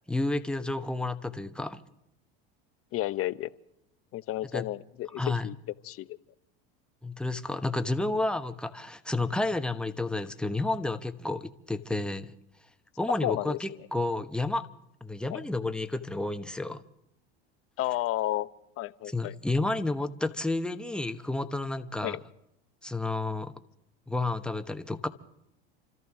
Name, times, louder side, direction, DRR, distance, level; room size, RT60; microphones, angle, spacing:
voice 1, 0.1-1.8 4.5-4.6 5.2-5.5 7.0-12.3 13.0-14.6 15.0-16.8 19.1-22.2 22.8-23.5 24.1-25.1, left 2 dB, 5° left, 8 dB, 1.0 m, -31 dB
voice 2, 2.9-3.5 4.1-5.5 5.8-6.2 13.2-13.6 15.3-15.4 17.8-18.5 18.8-19.3 22.0-22.2, left 15 dB, 45° left, 14 dB, 0.8 m, -32 dB
29.0 x 13.5 x 3.6 m, 0.78 s
supercardioid pair, 100°, 31 cm